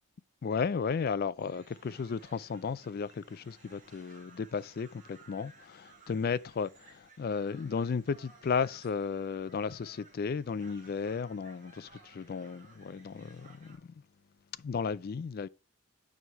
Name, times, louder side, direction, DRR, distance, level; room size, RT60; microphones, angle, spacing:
voice 1, 0.4-13.8 14.6-15.5, left 5 dB, 45° left, 0.3 m, -34 dB
sound 1, 1.4-13.8, right 3 dB, 35° right, 2.1 m, -59 dB
7.3 x 6.2 x 3.2 m
head